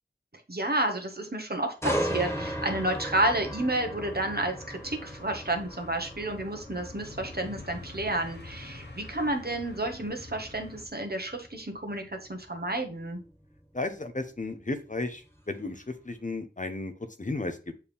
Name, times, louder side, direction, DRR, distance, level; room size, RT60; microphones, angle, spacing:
voice 1, 0.5-13.2, right 1 dB, 55° right, 4 dB, 1.3 m, -31 dB
sound 1, 1.8-15.7 16.1-16.3, equal, 15° left, 1.7 m, -38 dB
sound 2, 2.3-10.8, left 2 dB, 65° left, 1.1 m, -46 dB
voice 2, 13.7-16.9 17.2-17.7, left 2 dB, 45° left, 8 dB, 0.9 m, -34 dB
6.7 x 4.5 x 3.6 m, 0.34 s
wide cardioid pair, 40°, 19 cm